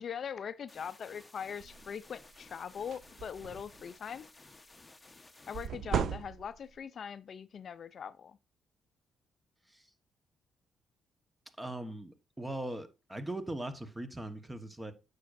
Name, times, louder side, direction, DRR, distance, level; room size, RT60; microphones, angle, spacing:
voice 1, 0.0-4.3 5.5-8.4, left 7 dB, 55° left, 0.4 m, -41 dB
sound 1, 0.7-5.7, left 2 dB, 15° left, 0.9 m, -56 dB
sound 2, 1.6-1.9 2.3-2.5 2.8-3.9 5.5-6.8, right 8 dB, 65° right, 0.5 m, -36 dB
voice 2, 11.6-14.9, right 1 dB, 10° right, 1.1 m, -40 dB
9.4 x 6.6 x 2.5 m
cardioid pair, 90°, 0 cm